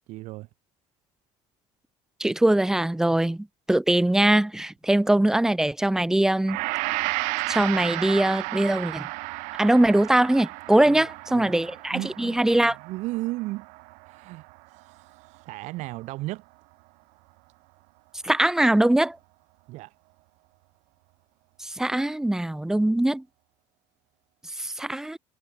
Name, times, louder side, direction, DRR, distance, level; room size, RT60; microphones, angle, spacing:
voice 1, 0.1-0.5 10.8-11.5 11.9-13.7 14.0-14.5 14.7-16.4 19.7-19.9, right 20 dB, 70° right, 1.3 m, -35 dB
voice 2, 2.2-6.6 7.5-9.1 9.6-12.8 18.2-19.2 21.6-23.2 24.6-25.2, right 1 dB, 5° right, 0.5 m, -22 dB
Gong, 6.5-14.9 15.2-15.4, right 30 dB, 85° right, 1.6 m, -33 dB
cardioid pair, 135°, 12 cm